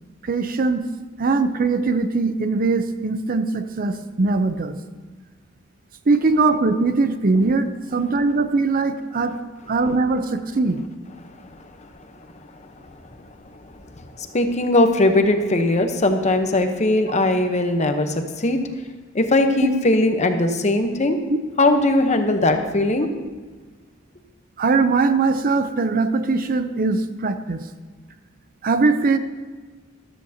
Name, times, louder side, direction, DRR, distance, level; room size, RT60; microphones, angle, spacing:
voice 1, 0.2-0.9 1.2-4.8 6.1-9.4 9.7-10.8 24.6-27.6 28.6-29.2, right 3 dB, 45° right, 10 dB, 0.6 m, -21 dB
voice 2, 11.2-12.3 12.8-18.6 19.1-21.2 21.6-23.1, left 2 dB, 35° left, 6 dB, 0.9 m, -20 dB
14.0 x 13.0 x 2.8 m, 1.4 s
head